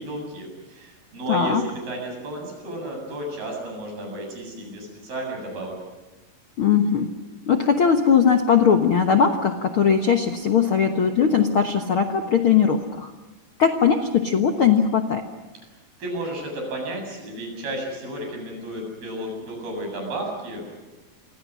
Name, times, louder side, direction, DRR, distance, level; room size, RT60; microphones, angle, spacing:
voice 1, 0.0-5.8 16.0-20.7, right 1 dB, 70° right, 2 dB, 9.8 m, -33 dB
voice 2, 1.3-1.6 6.6-7.1 7.5-13.1 13.6-15.3, left 7 dB, 80° left, 5 dB, 1.2 m, -19 dB
29.5 x 24.5 x 6.3 m, 1.2 s
omnidirectional pair, 4.5 m